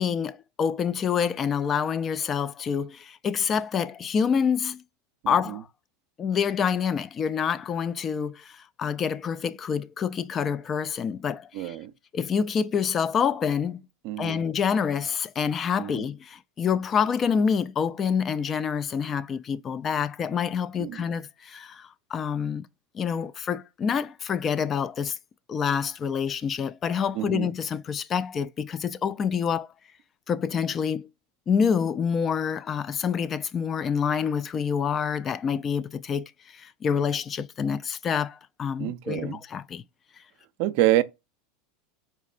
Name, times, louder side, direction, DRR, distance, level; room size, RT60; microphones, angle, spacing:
voice 1, 0.0-4.8 5.3-5.7 6.2-11.8 12.1-13.8 14.2-22.7 22.9-25.2 25.5-29.7 30.3-31.1 31.5-39.8, left 7 dB, 30° left, 0.3 m, -27 dB
voice 2, 5.2-5.6 11.5-11.9 14.0-14.4 15.8-16.0 20.8-21.0 27.2-27.5 38.8-39.4 40.6-41.0, right 14 dB, 60° right, 0.4 m, -27 dB
4.3 x 3.1 x 2.4 m
hypercardioid pair, 105°, 0 cm